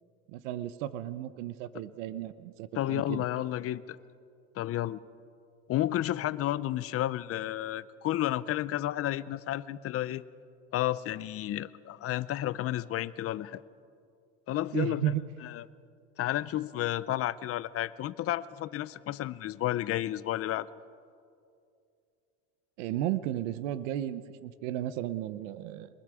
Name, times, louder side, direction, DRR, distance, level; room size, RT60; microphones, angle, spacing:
voice 1, 0.3-3.3 14.7-15.3 22.8-25.9, right 12 dB, 85° right, 14 dB, 0.9 m, -34 dB
voice 2, 2.7-4.0 4.6-5.0 5.7-10.2 10.7-13.6 14.5-15.0 15.4-15.6 16.2-20.7, left 13 dB, 40° left, 17 dB, 0.6 m, -31 dB
26.5 x 20.5 x 4.9 m, 2.4 s
supercardioid pair, 120°, 37 cm